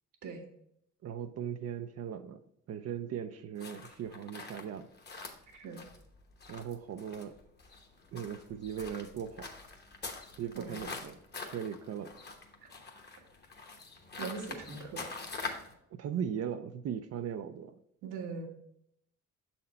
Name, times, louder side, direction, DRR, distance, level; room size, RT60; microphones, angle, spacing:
voice 1, 1.0-2.4 2.7-4.9 6.5-7.4 8.1-9.5 10.4-11.2 11.4-12.2 16.0-17.8, right 8 dB, 55° right, 8 dB, 0.5 m, -38 dB
sound 1, 3.6-15.7, left 3 dB, 35° left, 1.1 m, -45 dB
voice 2, 14.2-15.0 18.0-18.5, right 4 dB, 80° right, 2 dB, 1.4 m, -40 dB
6.6 x 4.3 x 4.1 m, 0.74 s
cardioid pair, 90°, 30 cm